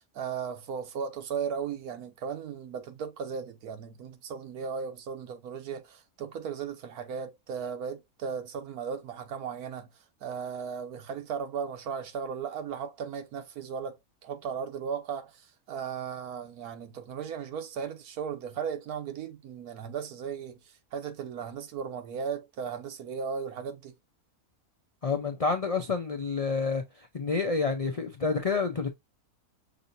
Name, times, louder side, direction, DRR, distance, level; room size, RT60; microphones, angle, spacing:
voice 1, 0.0-9.9 10.2-14.0 14.2-23.9, right 7 dB, 90° right, 1.4 m, -36 dB
voice 2, 25.0-26.8 27.1-28.9, left 4 dB, 70° left, 0.3 m, -28 dB
6.0 x 2.8 x 2.6 m
omnidirectional pair, 1.5 m